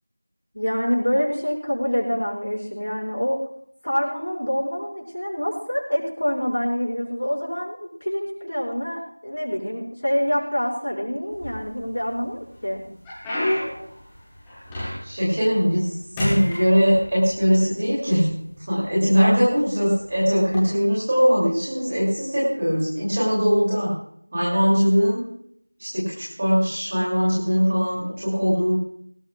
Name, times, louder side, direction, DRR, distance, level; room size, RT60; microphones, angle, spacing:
voice 1, 0.5-3.4 3.8-12.8, equal, 75° left, -3 dB, 6.0 m, -26 dB
sound 1, 11.3-12.0 12.5-15.3 15.6-15.9 16.2-17.4 18.2-18.3 19.0-19.2 20.4-20.6, left 1 dB, ahead, 0.8 m, -29 dB
voice 2, 15.0-23.9 24.3-25.2 25.8-28.7, equal, 15° right, -7 dB, 2.7 m, -21 dB
19.0 x 18.0 x 2.4 m, 0.66 s
figure-of-eight pair, 180°, 0 cm